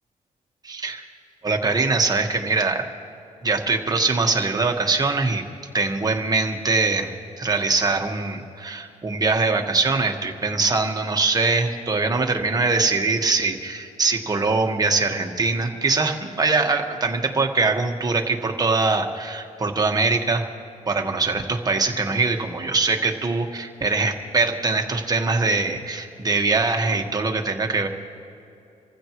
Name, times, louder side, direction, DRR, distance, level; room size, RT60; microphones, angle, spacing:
voice 1, 0.6-1.0 1.4-2.9 3.4-5.4 5.7-20.4 20.9-27.9, right 3 dB, 25° right, 3 dB, 1.4 m, -22 dB
27.0 x 15.0 x 3.1 m, 2.8 s
cardioid pair, 115°, 14 cm